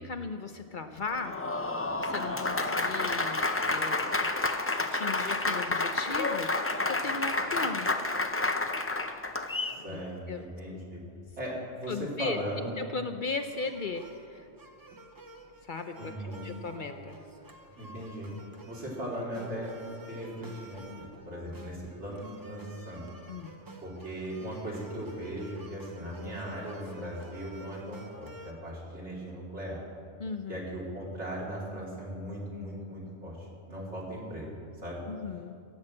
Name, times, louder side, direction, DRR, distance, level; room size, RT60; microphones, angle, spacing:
voice 1, 0.0-1.4 2.0-4.3 4.8-7.9 9.8-10.0 10.3-10.4 10.7-10.8 11.9-12.4 12.8-14.5 15.6-17.2 23.3-23.6 30.2-30.6 35.1-35.6, left 4 dB, 55° left, 7 dB, 0.7 m, -37 dB
Applause, 1.1-9.8, left 2 dB, 20° left, 0.4 m, -30 dB
voice 2, 9.6-11.0 11.4-12.7 16.0-16.5 17.8-18.3 18.7-19.7 20.1-23.0 23.8-29.8 30.5-34.5 34.8-35.0, equal, 75° right, -4 dB, 3.3 m, -38 dB
sound 1, 13.4-28.5, right 1 dB, 20° right, 0.8 m, -50 dB
16.5 x 6.3 x 7.5 m, 2.5 s
omnidirectional pair, 1.2 m